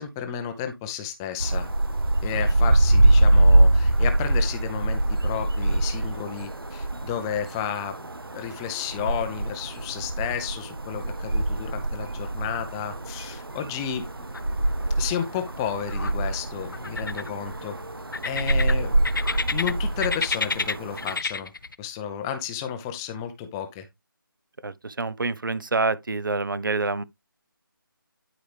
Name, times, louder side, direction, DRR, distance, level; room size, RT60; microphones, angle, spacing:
voice 1, 0.0-1.7 2.2-8.0 8.3-14.1 15.0-17.7 18.2-19.0 19.5-21.5 21.8-23.9, left 8 dB, 10° left, 0.6 m, -32 dB
sound 1, 1.4-21.2, right 1 dB, 85° right, 1.3 m, -24 dB
sound 2, 14.3-14.9 15.2-16.1 16.7-17.6 18.1-19.7 20.0-21.7, left 4 dB, 65° left, 0.8 m, -29 dB
voice 2, 24.6-27.0, right 3 dB, 65° right, 0.9 m, -27 dB
11.5 x 5.0 x 3.3 m
figure-of-eight pair, 160°, 12 cm